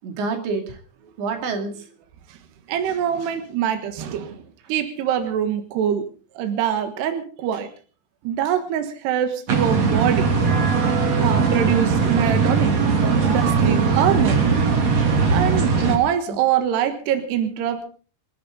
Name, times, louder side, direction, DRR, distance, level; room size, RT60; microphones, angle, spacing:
voice 1, 0.0-0.8 1.2-1.9 6.4-6.6 14.7-14.9 15.7-15.9 16.3-16.4, right 4 dB, 90° right, 5 dB, 4.7 m, -29 dB
voice 2, 2.7-4.4 4.7-6.0 6.3-7.7 8.2-10.3 11.2-12.8 13.2-14.4 15.3-17.8, right 9 dB, 70° right, 7 dB, 3.5 m, -24 dB
sound 1, 9.5-16.0, right 5 dB, 40° right, 3.6 m, -19 dB
26.5 x 13.5 x 3.8 m, 0.39 s
omnidirectional pair, 5.0 m